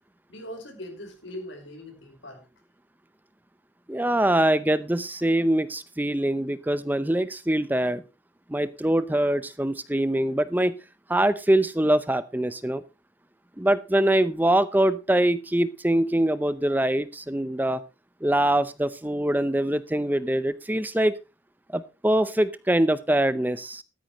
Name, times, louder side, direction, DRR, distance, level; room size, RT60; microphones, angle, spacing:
voice 1, 0.3-2.4, left 1 dB, 80° left, 4 dB, 5.3 m, -40 dB
voice 2, 3.9-8.0 8.5-10.7 11.1-12.8 13.6-17.8 18.2-21.1 21.7-23.8, right 1 dB, 10° right, 14 dB, 0.6 m, -23 dB
14.5 x 13.0 x 3.1 m, 0.28 s
head